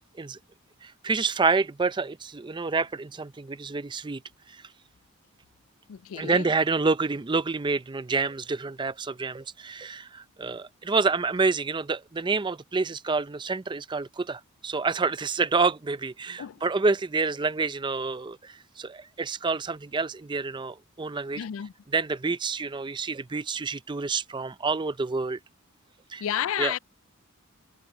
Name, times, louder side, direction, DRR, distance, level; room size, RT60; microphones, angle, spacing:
voice 1, 0.8-4.2 6.1-21.4 21.9-25.4 26.1-26.2 26.6-26.7, right 4 dB, 20° right, 0.5 m, -28 dB
voice 2, 5.9-6.5 16.4-16.6 21.4-21.7 26.2-26.8, left 10 dB, 70° left, 0.4 m, -31 dB
head